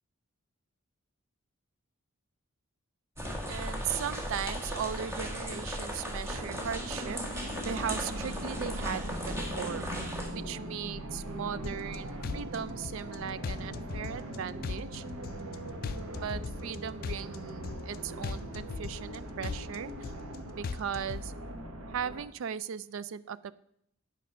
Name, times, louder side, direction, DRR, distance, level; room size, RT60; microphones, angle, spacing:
sound 1, 3.2-10.3, equal, 10° right, 1.3 m, -37 dB
voice 1, 3.5-15.0 15.9-20.1 20.4-21.3 21.9-23.5, right 8 dB, 65° right, 16 dB, 0.3 m, -38 dB
sound 2, 6.3-22.2, right 1 dB, 80° right, 1.1 m, -41 dB
sound 3, 11.6-12.0 12.2-13.2 13.4-14.4 14.6-15.6 15.8-16.8 17.0-18.0 18.2-19.2 19.4-20.4 20.6-21.2, left 5 dB, 45° left, 0.3 m, -38 dB
8.7 x 5.4 x 5.4 m, 0.74 s
head